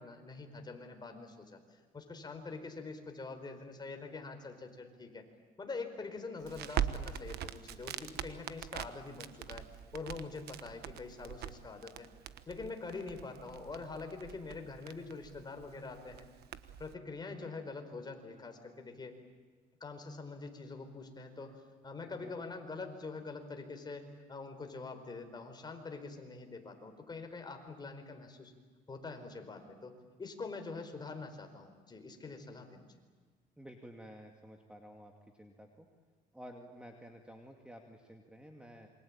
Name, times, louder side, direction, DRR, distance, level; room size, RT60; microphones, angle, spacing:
voice 1, 0.0-1.6 1.9-5.2 5.6-9.6 9.9-12.1 12.5-16.3 16.8-19.1 19.8-21.5 21.8-28.5 28.9-32.9, left 3 dB, 25° left, 5 dB, 4.7 m, -45 dB
Crackle, 6.4-16.9, right 10 dB, 70° right, 1.3 m, -42 dB
voice 2, 33.6-35.1 35.4-35.9 36.3-38.9, equal, 5° right, 3 dB, 2.4 m, -52 dB
28.0 x 24.0 x 8.9 m, 1.5 s
cardioid pair, 110°, 17 cm